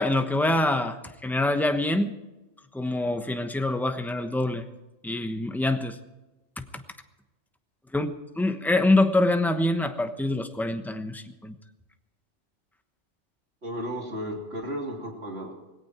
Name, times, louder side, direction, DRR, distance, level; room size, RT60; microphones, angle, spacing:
voice 1, 0.0-2.1 2.7-4.7 5.0-6.0 6.6-6.8 7.9-11.5, left 2 dB, ahead, 7 dB, 1.0 m, -25 dB
voice 2, 13.6-15.5, equal, 60° right, 0 dB, 3.5 m, -34 dB
18.5 x 17.0 x 4.5 m, 1.1 s
omnidirectional pair, 1.2 m